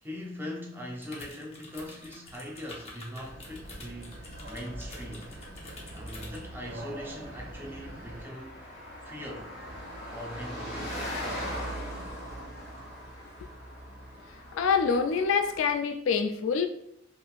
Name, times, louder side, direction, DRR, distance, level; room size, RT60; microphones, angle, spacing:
voice 1, 0.0-5.3 5.9-8.7 9.0-9.6 10.1-11.2, equal, 10° right, 0.6 m, -41 dB
sound 1, 1.0-6.5, left 2 dB, 30° left, 0.7 m, -47 dB
Car passing by, 2.5-15.8, equal, 60° left, 1.2 m, -41 dB
sound 2, 3.2-8.2, right 1 dB, 80° right, 0.7 m, -44 dB
voice 2, 14.5-16.7, left 5 dB, 75° left, 0.3 m, -26 dB
3.5 x 2.5 x 2.3 m
head